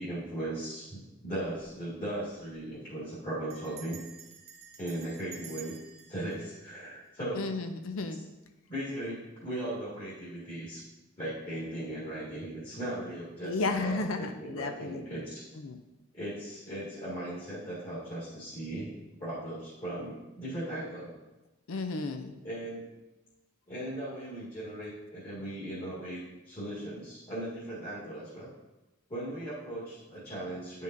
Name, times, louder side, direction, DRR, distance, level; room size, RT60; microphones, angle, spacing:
voice 1, 0.0-4.0 4.8-5.7 6.1-7.5 8.7-10.8 11.2-15.5 16.1-18.9 19.2-21.1 22.4-22.9 23.7-28.5 29.1-30.8, right 1 dB, 35° left, -8 dB, 1.9 m, -38 dB
Bell, 1.4-1.7 2.0-2.1 2.3-2.7 3.5-7.6, right 7 dB, 30° right, 1.0 m, -51 dB
voice 2, 7.4-8.2 13.4-15.0 15.6-15.8 21.7-22.3, left 3 dB, 90° left, 7 dB, 0.5 m, -33 dB
9.4 x 5.3 x 2.6 m, 1.0 s
head